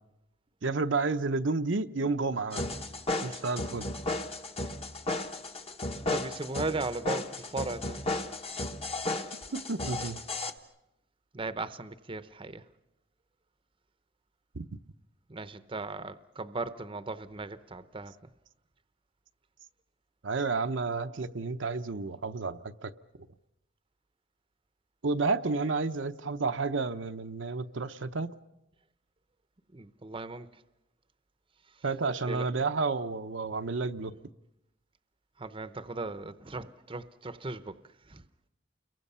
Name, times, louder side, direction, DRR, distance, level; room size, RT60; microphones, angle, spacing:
voice 1, 0.6-2.6 3.2-3.9 9.5-10.2 14.6-14.7 20.2-22.9 25.0-28.3 31.8-34.2, right 3 dB, 75° right, 0.8 m, -31 dB
sound 1, 2.5-10.5, left 2 dB, 30° left, 1.1 m, -34 dB
voice 2, 6.1-8.0 11.3-12.6 15.3-18.1 29.7-30.5 32.3-32.5 35.4-37.7 38.1-38.2, right 3 dB, 30° right, 0.8 m, -37 dB
29.5 x 22.5 x 5.6 m
head